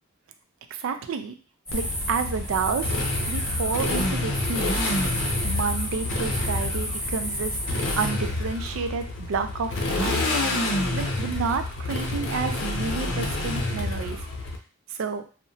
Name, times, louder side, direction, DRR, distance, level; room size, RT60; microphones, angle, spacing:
voice 1, 0.7-1.4 1.7-3.0 3.3-4.9 5.4-10.3 10.9-14.2 14.9-15.2, right 5 dB, 85° right, 7 dB, 0.4 m, -30 dB
Motorcycle, 1.7-14.6, left 2 dB, 75° left, 0.6 m, -28 dB
sound 1, 1.7-8.1, left 1 dB, 5° left, 1.3 m, -31 dB
2.8 x 2.1 x 2.6 m, 0.38 s
head